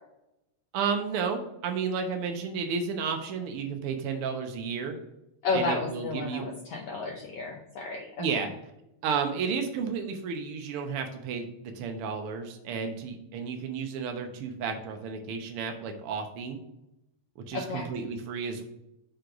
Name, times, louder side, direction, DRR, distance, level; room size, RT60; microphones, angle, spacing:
voice 1, 0.7-4.9 5.5-6.5 8.2-8.5 9.0-16.6 17.4-18.6, right 6 dB, 75° right, 4 dB, 1.3 m, -32 dB
voice 2, 5.4-8.4 17.5-17.9, left 3 dB, 90° left, 0 dB, 1.3 m, -32 dB
6.4 x 3.9 x 5.7 m, 0.84 s
omnidirectional pair, 3.7 m